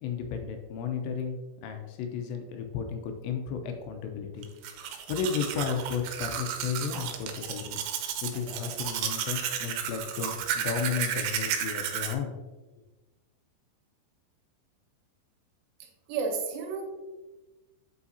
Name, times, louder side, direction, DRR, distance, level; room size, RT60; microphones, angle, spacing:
voice 1, 0.0-4.5 5.1-7.8 8.2-12.3, left 6 dB, 80° left, 5 dB, 2.8 m, -33 dB
Domestic sounds home sounds, 4.4-12.1, right 9 dB, 90° right, 3.2 m, -33 dB
voice 2, 15.8-16.8, right 5 dB, 70° right, 2 dB, 2.9 m, -32 dB
8.3 x 5.0 x 2.7 m, 1.1 s
omnidirectional pair, 5.3 m